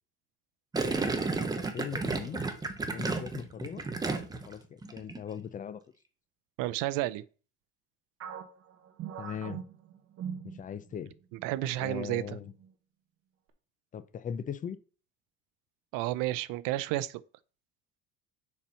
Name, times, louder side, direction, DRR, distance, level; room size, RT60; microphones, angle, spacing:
Gurgling, 0.7-4.5 4.8-5.2, right 3 dB, 10° right, 0.8 m, -32 dB
voice 1, 1.5-2.4 2.9-3.8 4.3-5.8 9.2-9.6 10.4-11.1 11.8-12.5 13.9-14.8, left 8 dB, 25° left, 0.5 m, -39 dB
voice 2, 6.6-7.2 11.4-12.4 15.9-17.2, right 16 dB, 80° right, 0.6 m, -31 dB
sound 1, 8.2-11.0 11.4-11.6 12.2-12.7, right 8 dB, 45° right, 1.2 m, -42 dB
7.2 x 4.4 x 5.5 m
cardioid pair, 150°, 32 cm